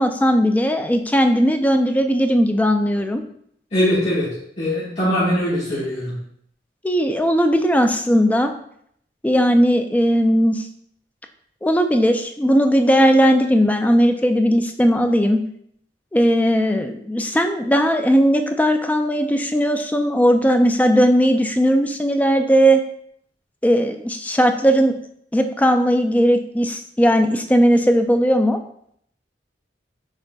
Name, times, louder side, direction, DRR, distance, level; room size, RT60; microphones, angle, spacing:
voice 1, 0.0-3.2 6.8-8.5 9.2-10.7 11.6-15.4 16.1-22.8 23.6-25.0 25.3-28.6, equal, 10° left, 6 dB, 0.3 m, -17 dB
voice 2, 3.7-4.3 4.6-6.1, equal, 40° left, -11 dB, 1.4 m, -21 dB
6.4 x 3.5 x 2.3 m, 0.69 s
head